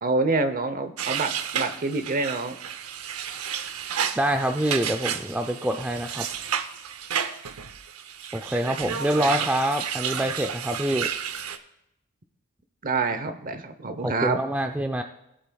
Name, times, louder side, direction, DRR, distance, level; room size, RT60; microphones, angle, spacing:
voice 1, 0.0-2.6 9.2-9.5 12.8-14.4, right 3 dB, 40° right, 9 dB, 0.8 m, -27 dB
sound 1, 1.0-11.6, right 8 dB, 85° right, 0.7 m, -32 dB
voice 2, 4.2-6.3 8.3-11.1 14.0-15.0, right 1 dB, 5° right, 5 dB, 0.3 m, -26 dB
17.0 x 8.2 x 2.3 m, 0.85 s
head